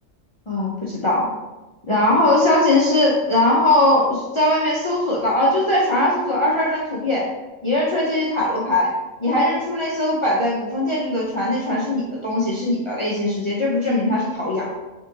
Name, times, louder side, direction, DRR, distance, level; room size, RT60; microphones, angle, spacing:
voice 1, 0.5-1.3 1.9-7.2 7.6-8.9 9.2-14.7, left 1 dB, 35° left, -5 dB, 0.5 m, -20 dB
4.0 x 3.5 x 2.7 m, 1.1 s
omnidirectional pair, 1.3 m